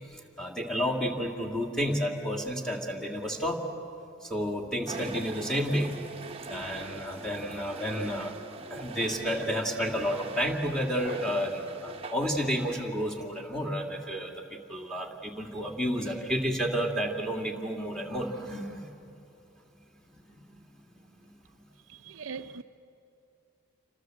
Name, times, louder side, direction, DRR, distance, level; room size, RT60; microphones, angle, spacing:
voice 1, 0.1-3.7 4.2-6.1 6.5-8.4 8.7-18.9 20.4-20.5, equal, 5° left, 2.4 m, -31 dB
sound 1, 4.9-13.1, right 3 dB, 25° right, 1.1 m, -43 dB
voice 2, 21.9-22.6, right 5 dB, 60° right, 0.6 m, -40 dB
28.5 x 25.0 x 7.8 m
head